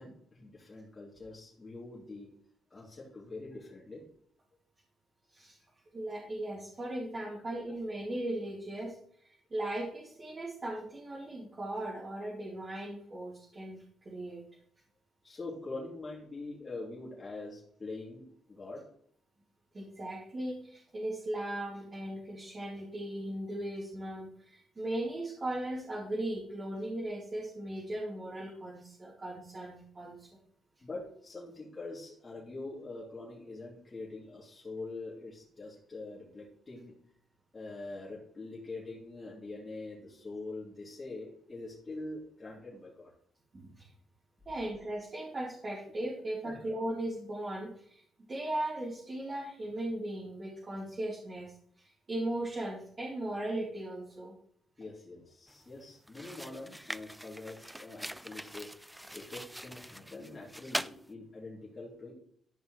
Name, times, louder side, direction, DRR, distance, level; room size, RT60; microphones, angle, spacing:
voice 1, 0.0-2.3 2.7-4.0 15.2-18.8 30.8-36.9 37.5-43.1 46.4-46.6 54.8-58.7 59.1-62.1, left 2 dB, 25° left, -6 dB, 2.8 m, -44 dB
voice 2, 5.9-14.4 19.7-30.3 43.5-43.9 44.5-48.0 48.3-54.3, right 1 dB, 30° right, -4 dB, 2.4 m, -38 dB
sound 1, 55.5-55.7 56.1-61.0, equal, 5° right, 0.3 m, -42 dB
13.0 x 5.3 x 3.2 m, 0.63 s
cardioid pair, 90°, 0 cm